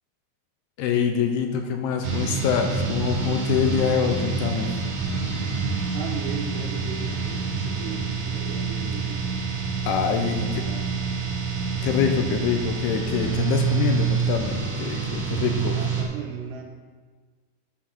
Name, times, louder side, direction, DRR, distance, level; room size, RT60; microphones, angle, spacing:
voice 1, 0.8-4.7 9.9-10.6 11.8-15.8, left 7 dB, 80° left, 5 dB, 2.5 m, -25 dB
sound 1, 2.0-16.0, right 5 dB, 55° right, 1.8 m, -27 dB
voice 2, 5.9-9.2 10.2-11.0 11.9-12.6 15.7-16.6, right 5 dB, 75° right, 2 dB, 3.0 m, -37 dB
11.0 x 6.3 x 5.9 m, 1.5 s
omnidirectional pair, 4.9 m